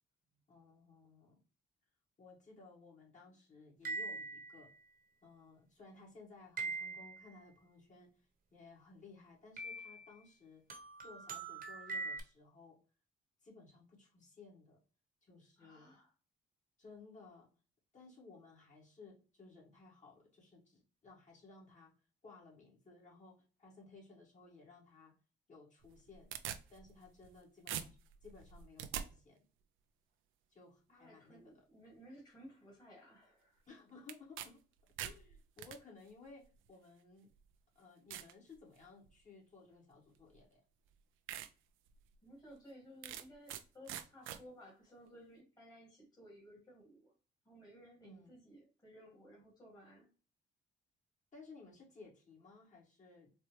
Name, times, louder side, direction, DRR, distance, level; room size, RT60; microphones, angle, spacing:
voice 1, 0.5-1.4 2.2-4.7 5.2-10.7 11.0-12.8 13.4-14.8 15.2-16.0 16.8-17.5 17.9-21.9 22.2-25.1 25.5-26.3 26.7-29.4 30.5-31.7 33.7-34.6 35.0-37.3 37.8-40.6 48.0-48.3 51.3-53.3, left 3 dB, 40° left, -3 dB, 2.0 m, -58 dB
sound 1, 3.9-4.6 6.6-7.3 9.6-10.2 10.7-12.2, right 3 dB, 45° right, 1.0 m, -42 dB
voice 2, 15.6-16.1 30.9-33.6 42.2-47.1 47.5-50.1, equal, 20° left, -4 dB, 1.8 m, -57 dB
sound 2, 25.8-27.4 27.7-29.1 34.1-34.5 34.8-35.8 36.7-36.8 37.4-37.5 38.1-38.3 38.8-39.2 40.3-40.4 40.9-41.0 41.3-41.5 41.9-42.0 43.0-43.6 43.9-44.4, right 10 dB, 80° right, 0.5 m, -44 dB
4.2 x 2.2 x 3.1 m, 0.36 s
cardioid pair, 90°, 20 cm